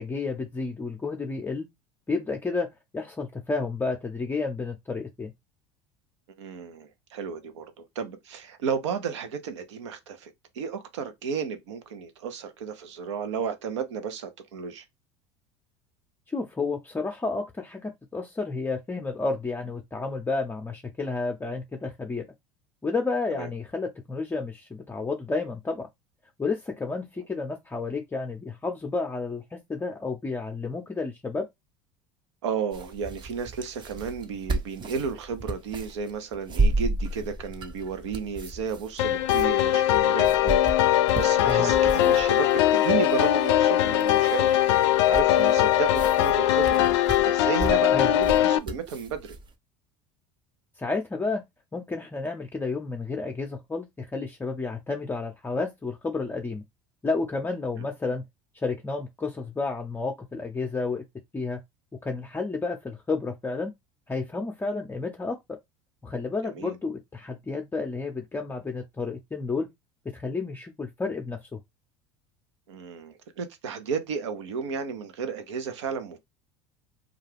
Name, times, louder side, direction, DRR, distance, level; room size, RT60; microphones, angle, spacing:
voice 1, 0.0-1.7 2.1-2.7 2.9-5.3 16.3-22.2 22.8-25.9 26.4-31.5 41.4-41.7 47.9-48.1 50.8-51.4 51.7-56.6 57.0-58.2 58.5-61.0 61.3-61.6 62.0-63.7 64.1-65.6 66.0-69.7 70.0-71.6, left 3 dB, 15° left, 0.5 m, -31 dB
voice 2, 6.4-14.8 23.3-23.5 32.4-49.4 66.4-66.8 72.7-76.2, right 6 dB, 85° right, 0.7 m, -33 dB
sound 1, 32.7-49.5, right 2 dB, 30° right, 0.7 m, -33 dB
sound 2, 39.0-48.6, left 12 dB, 80° left, 0.4 m, -21 dB
2.4 x 2.3 x 3.3 m
hypercardioid pair, 85°, 15 cm